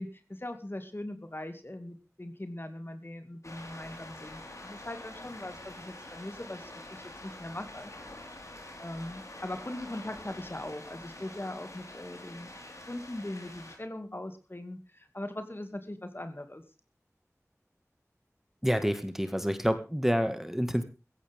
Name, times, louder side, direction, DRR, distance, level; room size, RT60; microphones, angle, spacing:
voice 1, 0.0-8.2 8.8-12.5 12.9-16.6, left 1 dB, 40° left, 8 dB, 2.3 m, -40 dB
sound 1, 3.4-13.8, left 1 dB, 65° left, 4.4 m, -46 dB
voice 2, 18.6-20.8, equal, 5° right, 9 dB, 1.8 m, -28 dB
16.0 x 15.5 x 3.6 m, 0.31 s
wide cardioid pair, 50°, 6 cm